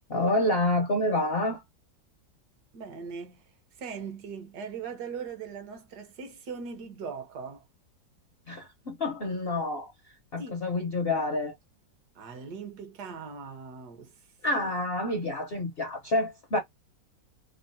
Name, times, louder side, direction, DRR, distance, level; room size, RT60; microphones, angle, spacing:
voice 1, 0.1-1.6 8.5-9.9 10.3-11.5 14.4-16.6, left 2 dB, 60° left, 0.6 m, -28 dB
voice 2, 2.7-3.5 3.8-7.6 10.4-10.6 12.1-14.2, right 5 dB, 65° right, 1.3 m, -40 dB
3.6 x 2.0 x 2.5 m
omnidirectional pair, 1.9 m